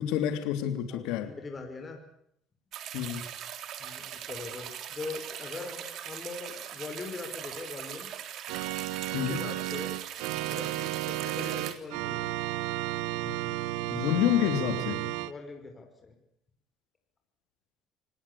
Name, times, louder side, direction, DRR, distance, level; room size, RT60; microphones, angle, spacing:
voice 1, 0.0-1.3 2.9-3.2 9.1-9.4 13.2-13.4 13.9-15.0, left 11 dB, 80° left, 9 dB, 3.2 m, -28 dB
voice 2, 0.6-2.0 3.8-8.1 9.3-9.9 10.3-12.3 15.3-16.2, left 4 dB, 25° left, 4 dB, 5.4 m, -41 dB
sound 1, 2.7-11.7, right 10 dB, 60° right, 3.4 m, -41 dB
Organ, 8.5-15.3, right 16 dB, 90° right, 1.2 m, -33 dB
27.0 x 19.0 x 8.5 m, 0.71 s
cardioid pair, 105°, 0 cm